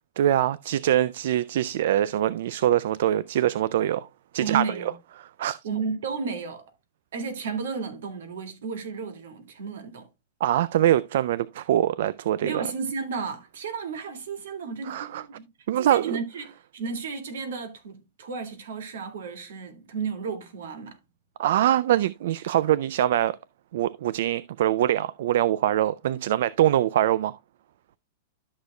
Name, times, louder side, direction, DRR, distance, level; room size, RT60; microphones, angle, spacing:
voice 1, 0.2-4.1 4.3-4.6 5.4-5.6 10.4-12.7 14.8-15.2 15.7-16.2 21.4-23.4 23.7-27.4, right 12 dB, 65° right, 0.3 m, -23 dB
voice 2, 4.4-4.9 5.6-6.7 7.1-10.1 12.4-15.5 15.8-21.0, right 5 dB, 85° right, 2.1 m, -33 dB
12.5 x 6.5 x 2.3 m
supercardioid pair, 160°, 0 cm